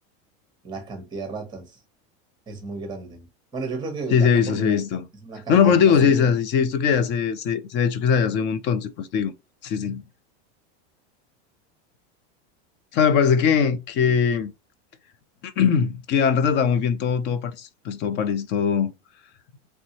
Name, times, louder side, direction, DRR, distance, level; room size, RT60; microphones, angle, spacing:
voice 1, 0.6-1.8 2.5-3.3 3.5-4.8 5.2-6.3, right 4 dB, 15° right, 1.2 m, -34 dB
voice 2, 4.1-5.1 5.5-9.3 9.6-10.0 12.9-14.5 15.4-18.9, left 6 dB, 35° left, 0.4 m, -21 dB
3.2 x 2.6 x 2.8 m
supercardioid pair, 145°, 33 cm